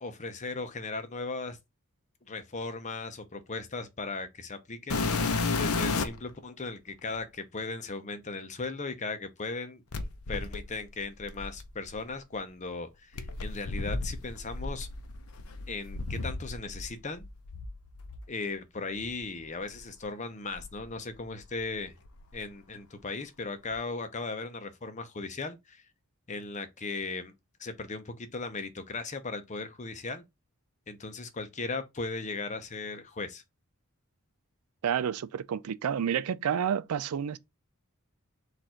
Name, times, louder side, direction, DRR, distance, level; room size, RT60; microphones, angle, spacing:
voice 1, 0.0-1.6 2.3-9.8 10.3-14.9 15.7-17.2 18.3-21.9 22.3-25.8 26.3-27.3 27.6-30.2 30.9-33.4, left 3 dB, 35° left, 0.7 m, -37 dB
sound 1, 4.9-6.3 7.2-7.3 9.9-12.0 13.2-16.9 17.2-18.2 19.0-19.1 19.7-19.8 20.5-21.6 21.9-22.4 23.7-23.8, left 3 dB, 80° left, 0.7 m, -33 dB
voice 2, 34.8-37.4, right 8 dB, 85° right, 0.4 m, -29 dB
4.3 x 2.6 x 4.3 m
head